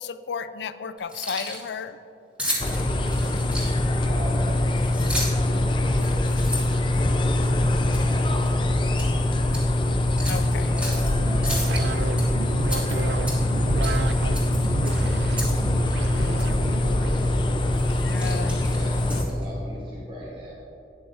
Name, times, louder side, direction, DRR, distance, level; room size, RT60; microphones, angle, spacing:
voice 1, 0.0-2.0 5.5-5.7 10.3-10.7 16.1-16.5 18.0-18.7, left 5 dB, 80° left, 12 dB, 0.4 m, -34 dB
Keys jangling, 1.0-1.7 2.4-4.0 4.8-5.5 5.9-7.5 7.9-8.1 8.5-9.1 9.5-9.6 10.2-11.1 11.4-12.2 12.7-13.6 13.8-14.0 14.3-15.6 15.9-16.0 16.4-16.5 17.1-17.4 17.7-19.5, left 1 dB, 5° right, 1.9 m, -33 dB
sound 1, 2.6-19.2, left 1 dB, 25° left, 0.5 m, -23 dB
voice 2, 4.0-4.8 5.1-7.6 8.0-9.8 10.5-15.7 16.2-17.8 18.1-20.5, equal, 30° right, -7 dB, 1.5 m, -41 dB
sound 2, 10.9-17.3, right 4 dB, 80° right, 0.4 m, -33 dB
12.5 x 9.5 x 2.6 m, 2.9 s
head